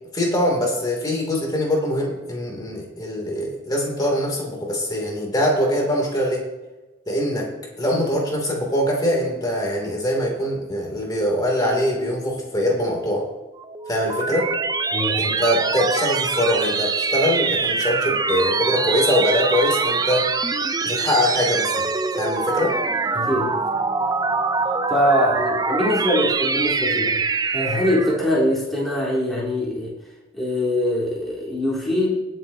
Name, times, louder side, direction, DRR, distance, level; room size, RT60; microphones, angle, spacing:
voice 1, 0.1-6.5 7.1-7.5 7.8-13.3 13.9-14.5 15.2-20.3 20.8-21.9 22.2-22.8, left 1 dB, 20° left, -1 dB, 2.7 m, -23 dB
sound 1, 13.6-28.2, right 4 dB, 20° right, 0.4 m, -24 dB
voice 2, 14.9-15.2 23.1-23.6 24.9-27.2 27.5-29.9 30.3-32.2, left 1 dB, ahead, -8 dB, 3.6 m, -22 dB
21.5 x 7.7 x 2.8 m, 1.1 s
head